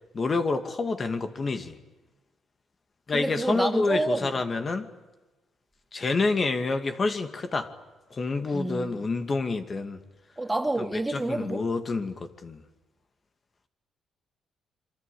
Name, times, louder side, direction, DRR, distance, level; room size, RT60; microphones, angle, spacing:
voice 1, 0.1-1.8 3.1-4.9 5.9-7.7 8.1-10.0 10.8-12.6, left 3 dB, 35° left, 2.4 m, -28 dB
voice 2, 3.1-4.3 8.5-9.1 10.4-11.7, right 2 dB, 10° right, 2.5 m, -29 dB
27.0 x 24.0 x 8.6 m
cardioid pair, 90°, 0 cm